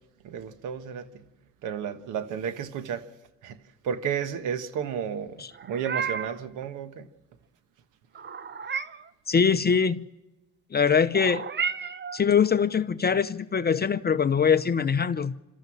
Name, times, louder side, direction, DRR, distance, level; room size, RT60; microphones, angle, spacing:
voice 1, 0.2-1.3 1.6-3.0 3.4-3.6 3.8-5.4 5.6-7.1, right 8 dB, 90° right, 1.4 m, -32 dB
Meow, 5.5-6.4 8.2-9.1 11.1-12.3, right 6 dB, 35° right, 1.0 m, -32 dB
voice 2, 9.3-10.1 10.7-11.5 12.1-15.4, left 6 dB, 35° left, 0.7 m, -23 dB
27.5 x 13.5 x 7.2 m
cardioid pair, 90°, 30 cm